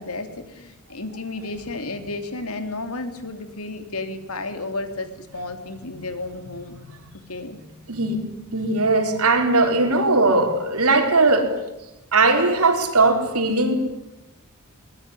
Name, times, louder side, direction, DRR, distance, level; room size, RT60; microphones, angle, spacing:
voice 1, 0.0-6.7 7.3-7.6, left 2 dB, 80° left, 8 dB, 3.2 m, -32 dB
voice 2, 8.5-11.5 12.1-13.7, right 3 dB, 85° right, 5 dB, 4.5 m, -19 dB
23.5 x 20.5 x 10.0 m, 0.93 s
head